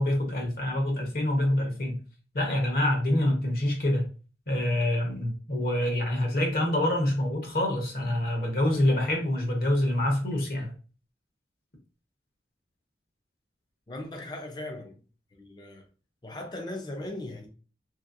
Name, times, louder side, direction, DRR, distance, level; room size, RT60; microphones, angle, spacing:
voice 1, 0.0-2.0 2.3-4.0 4.5-10.7, left 1 dB, 55° left, 0.9 m, -26 dB
voice 2, 13.9-15.0 15.3-15.8 16.2-17.5, left 1 dB, 25° left, 0.5 m, -38 dB
3.0 x 2.8 x 2.5 m
head